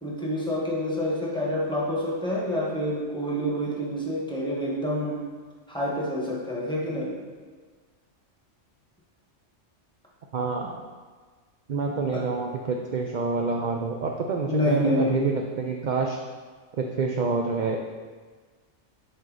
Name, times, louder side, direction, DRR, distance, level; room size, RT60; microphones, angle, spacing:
voice 1, 0.0-5.2 5.7-7.2 12.1-12.2 14.5-15.3, equal, 5° left, -5 dB, 1.2 m, -27 dB
voice 2, 10.3-10.8 11.7-16.2 16.8-17.8, right 4 dB, 55° right, 2 dB, 0.5 m, -27 dB
7.8 x 4.3 x 3.9 m, 1.5 s
omnidirectional pair, 1.2 m